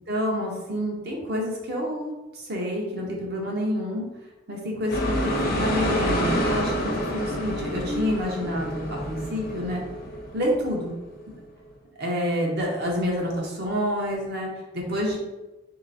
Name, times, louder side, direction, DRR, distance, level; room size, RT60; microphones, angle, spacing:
voice 1, 0.1-4.1 4.5-9.8 10.3-10.9 12.0-15.2, equal, 50° right, -1 dB, 0.9 m, -28 dB
sound 1, 4.9-11.2, equal, 45° left, 0.7 m, -28 dB
3.3 x 2.9 x 3.9 m, 1.1 s
head